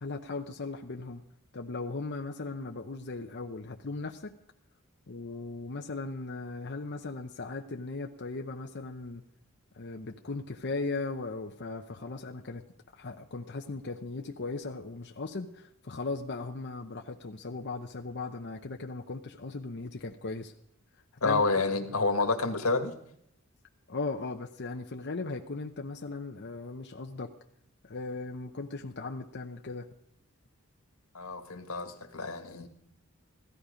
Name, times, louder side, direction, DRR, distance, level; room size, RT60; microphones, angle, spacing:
voice 1, 0.0-1.2 1.5-4.3 5.1-9.2 9.7-12.7 12.9-20.5 21.2-21.4 23.9-27.3 27.8-29.9, left 3 dB, 55° left, 3 dB, 0.8 m, -37 dB
voice 2, 21.2-22.9 31.1-32.7, left 3 dB, 90° left, 6 dB, 1.8 m, -29 dB
16.0 x 14.0 x 5.1 m, 0.72 s
head